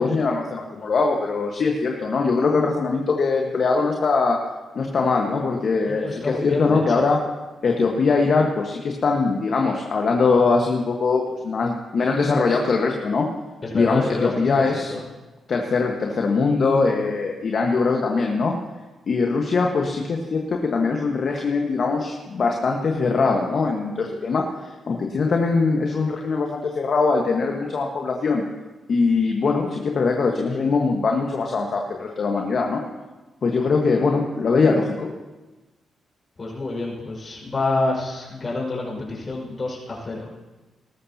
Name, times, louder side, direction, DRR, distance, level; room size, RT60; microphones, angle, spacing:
voice 1, 0.0-4.4 4.7-7.2 7.6-13.3 13.7-14.9 15.5-18.5 19.1-24.5 24.9-28.4 28.9-32.8 33.4-35.1, left 4 dB, 60° left, 1 dB, 1.4 m, -22 dB
voice 2, 5.9-6.8 13.6-15.0 36.4-40.3, left 2 dB, 40° left, -3 dB, 5.2 m, -27 dB
19.0 x 13.5 x 2.9 m, 1.2 s
supercardioid pair, 50°, 0 cm